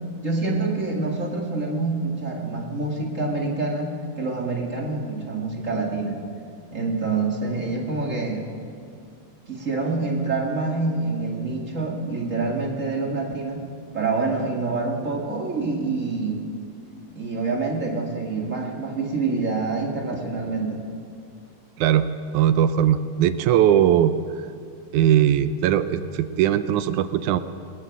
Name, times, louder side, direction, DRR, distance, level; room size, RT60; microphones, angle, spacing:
voice 1, 0.2-6.2 6.7-8.5 9.5-13.7 13.9-16.4 17.1-20.8, right 3 dB, 25° right, 0 dB, 2.3 m, -26 dB
voice 2, 22.3-24.1 24.9-27.4, right 10 dB, 85° right, 12 dB, 2.1 m, -19 dB
20.0 x 19.5 x 7.3 m, 2.2 s
omnidirectional pair, 3.5 m